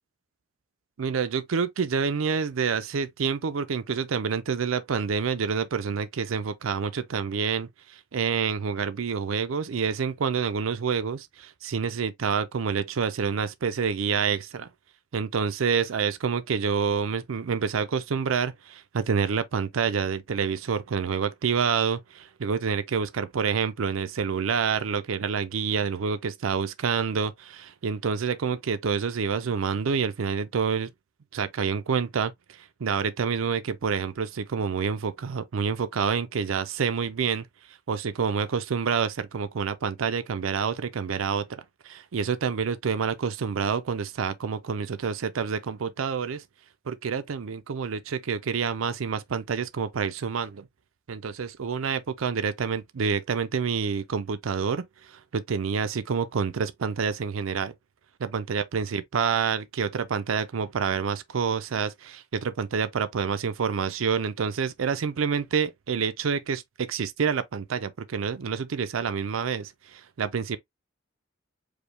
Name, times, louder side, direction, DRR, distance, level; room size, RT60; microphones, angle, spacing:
voice 1, 1.0-14.7 15.1-30.9 31.3-37.5 37.9-46.4 46.9-50.7 51.1-57.7 58.2-70.6, right 6 dB, 90° right, 0.5 m, -28 dB
5.0 x 2.2 x 3.2 m
head